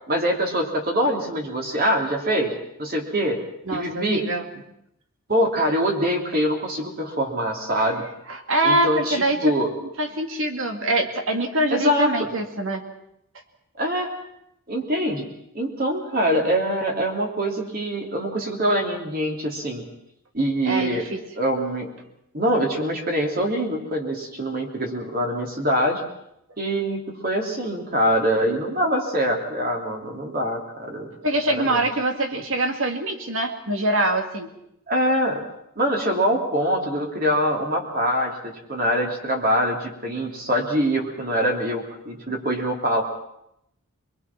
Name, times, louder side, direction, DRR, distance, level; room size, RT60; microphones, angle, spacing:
voice 1, 0.1-2.5 2.8-3.4 3.7-4.2 5.3-8.1 8.6-9.7 11.7-12.3 13.8-14.1 14.7-15.3 15.5-19.8 20.3-21.1 21.3-21.9 22.3-26.0 26.6-31.1 31.5-31.9 34.9-35.4 35.8-43.0, equal, 40° right, 1 dB, 3.1 m, -24 dB
voice 2, 3.7-4.5 8.3-9.5 9.8-12.8 20.6-21.2 31.2-34.5, right 1 dB, 60° right, 5 dB, 2.4 m, -24 dB
24.0 x 21.5 x 6.0 m, 0.79 s
head